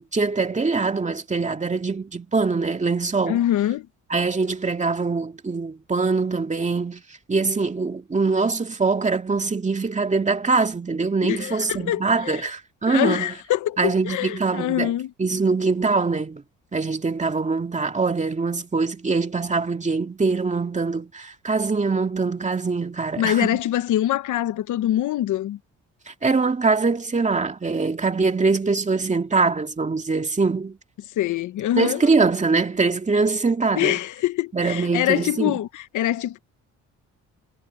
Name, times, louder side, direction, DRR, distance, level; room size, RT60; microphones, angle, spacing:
voice 1, 0.0-3.4 4.1-7.0 7.3-13.3 13.8-14.9 15.2-16.4 16.7-23.6 26.1-30.8 31.8-34.0 34.5-35.6, right 4 dB, 25° right, 2.1 m, -23 dB
voice 2, 3.3-3.9 11.2-12.5 12.9-15.1 23.2-25.6 31.2-32.0 33.8-36.4, left 13 dB, 80° left, 1.1 m, -24 dB
cardioid pair, 90°, 30 cm